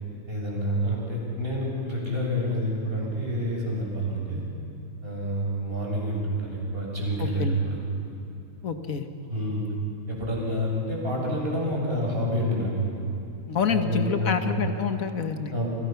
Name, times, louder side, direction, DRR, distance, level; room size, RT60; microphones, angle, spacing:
voice 1, 0.3-4.4 5.0-7.8 9.3-9.6 10.1-12.9 13.7-14.5 15.5-15.7, equal, 25° right, -3 dB, 7.0 m, -28 dB
voice 2, 7.2-7.6 8.6-9.0 13.5-15.5, left 6 dB, 45° left, 7 dB, 1.5 m, -27 dB
29.5 x 26.0 x 5.9 m, 2.7 s
omnidirectional pair, 2.4 m